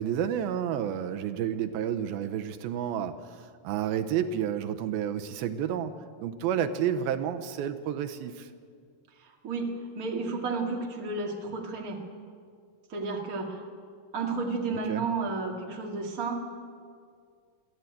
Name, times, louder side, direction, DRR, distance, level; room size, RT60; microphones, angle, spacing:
voice 1, 0.0-5.9 6.2-8.5 14.9-15.1, right 9 dB, 85° right, 9 dB, 2.6 m, -30 dB
voice 2, 9.2-12.0 12.9-13.7 14.1-16.4, right 3 dB, 30° right, 1 dB, 2.0 m, -32 dB
22.0 x 14.5 x 9.0 m, 2.1 s
omnidirectional pair, 4.2 m